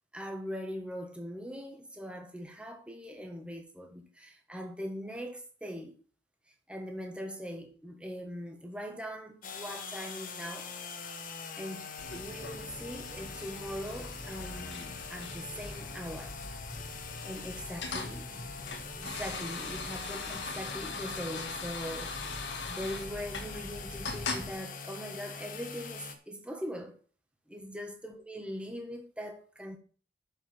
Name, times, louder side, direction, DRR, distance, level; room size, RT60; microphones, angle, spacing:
voice 1, 0.1-6.0 6.7-10.7 11.6-11.9 12.1-16.3 17.2-18.3 19.0-22.3 22.7-27.0 27.5-29.8, equal, 5° right, 1.5 m, -41 dB
sound 1, 9.4-26.2, left 5 dB, 45° left, 1.3 m, -44 dB
sound 2, 12.0-24.5, left 3 dB, 65° left, 1.7 m, -41 dB
7.0 x 6.9 x 7.6 m
head